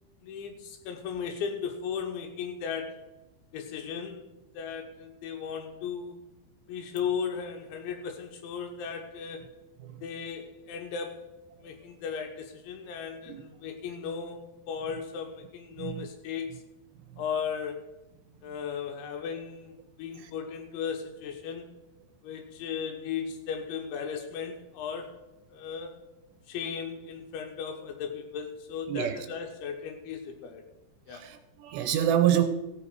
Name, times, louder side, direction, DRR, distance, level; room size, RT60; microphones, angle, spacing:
voice 1, 0.2-3.0 3.5-4.3 4.5-6.2 6.7-9.5 10.0-11.3 11.6-14.4 14.7-16.6 17.2-17.8 18.4-21.7 22.2-25.2 25.5-26.0 26.5-30.6 31.1-31.2, left 6 dB, 85° left, 4 dB, 3.4 m, -36 dB
voice 2, 15.8-16.1 20.2-20.3 28.9-29.2 31.1-32.4, right 10 dB, 80° right, 8 dB, 2.8 m, -27 dB
15.5 x 8.2 x 4.7 m, 0.99 s
omnidirectional pair, 5.3 m